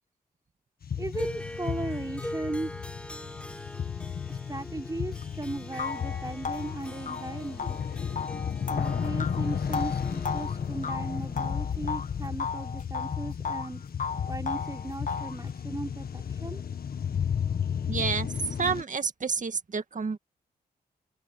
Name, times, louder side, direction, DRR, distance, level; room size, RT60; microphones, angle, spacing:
sound 1, 0.8-18.8, left 7 dB, 70° left, 1.7 m, -33 dB
voice 1, 0.9-2.7 4.3-7.8 8.7-13.8 14.2-16.6, right 2 dB, 20° right, 4.7 m, -37 dB
Harp, 1.1-12.4, equal, 5° left, 6.7 m, -43 dB
sound 2, 5.2-5.3 5.8-12.1 12.4-13.7 14.0-15.4, left 5 dB, 50° left, 1.2 m, -35 dB
voice 2, 17.9-18.3 18.6-20.2, right 5 dB, 50° right, 2.0 m, -29 dB
open air
cardioid pair, 60°, 16 cm